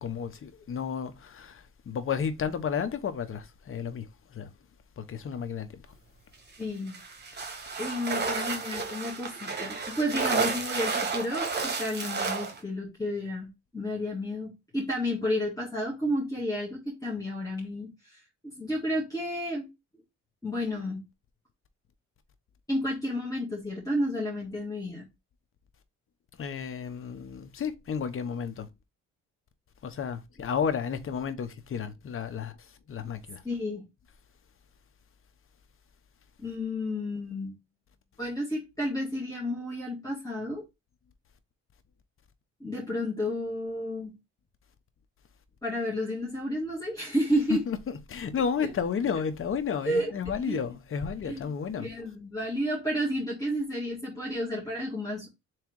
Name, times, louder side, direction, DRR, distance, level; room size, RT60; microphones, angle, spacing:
voice 1, 0.0-4.5 5.0-5.8 26.4-28.7 29.8-33.4 47.5-51.9, left 7 dB, 45° left, 0.9 m, -32 dB
voice 2, 6.6-7.0 7.8-19.7 20.4-21.0 22.7-25.1 33.4-33.8 36.4-37.5 38.2-40.6 42.6-44.2 45.6-47.6 48.6-48.7 49.8-50.1 50.4-50.6 51.3-51.5 51.8-55.3, equal, 10° left, 1.8 m, -31 dB
sound 1, 6.9-12.6, right 4 dB, 35° right, 1.4 m, -31 dB
3.6 x 3.2 x 4.6 m
cardioid pair, 90°, 30 cm